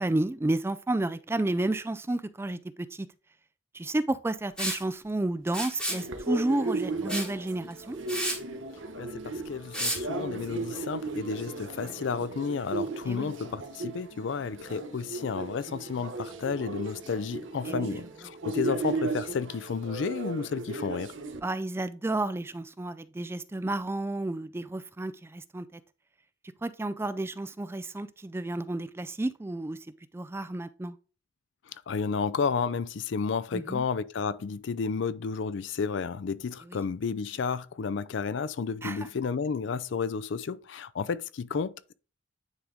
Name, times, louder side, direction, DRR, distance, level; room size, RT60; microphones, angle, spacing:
voice 1, 0.0-3.1 3.7-8.0 13.1-13.3 17.6-18.0 21.4-25.8 26.6-29.8 30.1-31.0 33.5-33.8 36.7-36.8 38.8-39.1, right 2 dB, 10° right, 0.3 m, -31 dB
Liquid, 4.6-4.8 5.5-6.0 7.1-7.3 7.7-7.8 8.1-8.4 9.7-10.0, equal, 5° left, 2.1 m, -31 dB
sound 1, 5.9-21.4, right 3 dB, 70° right, 0.9 m, -36 dB
voice 2, 9.0-21.1 31.9-41.9, left 5 dB, 65° left, 0.4 m, -32 dB
9.6 x 3.7 x 3.5 m
head